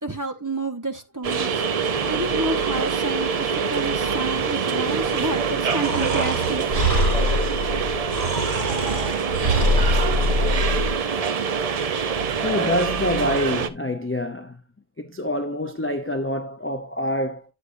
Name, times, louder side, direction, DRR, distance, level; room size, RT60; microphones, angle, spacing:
voice 1, 0.0-1.6 2.0-7.0, right 2 dB, 20° right, 0.8 m, -29 dB
sound 1, 1.2-13.7, right 6 dB, 45° right, 0.6 m, -25 dB
Breathing, 5.8-10.9, equal, 80° right, 3.2 m, -23 dB
voice 2, 12.3-14.6 15.0-17.4, left 1 dB, 15° left, 0.4 m, -26 dB
9.5 x 6.5 x 2.6 m
omnidirectional pair, 1.0 m